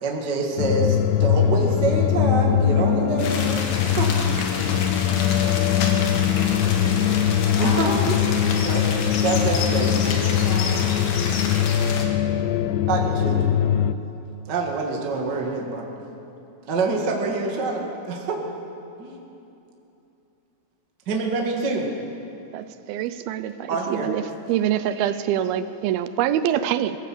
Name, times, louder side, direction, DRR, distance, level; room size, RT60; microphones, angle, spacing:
voice 1, 0.0-4.1 7.6-8.9 9.2-9.9 12.9-13.5 14.5-15.9 16.7-18.4 19.0-19.2 21.1-21.9 23.7-24.1 25.0-25.1, right 3 dB, 35° right, 0 dB, 1.9 m, -26 dB
sound 1, 0.6-13.9, left 9 dB, 90° left, 2.8 m, -21 dB
sound 2, 3.2-12.1, left 4 dB, 70° left, 3.3 m, -30 dB
voice 2, 5.0-6.2 6.6-6.8 7.5-7.8 8.4-8.7 10.0-11.5 23.5-23.6, left 1 dB, 50° left, -5 dB, 6.4 m, -37 dB
voice 3, 22.5-24.2 24.5-27.0, right 11 dB, 80° right, 12 dB, 2.3 m, -25 dB
22.5 x 15.0 x 7.8 m, 2.8 s
omnidirectional pair, 4.7 m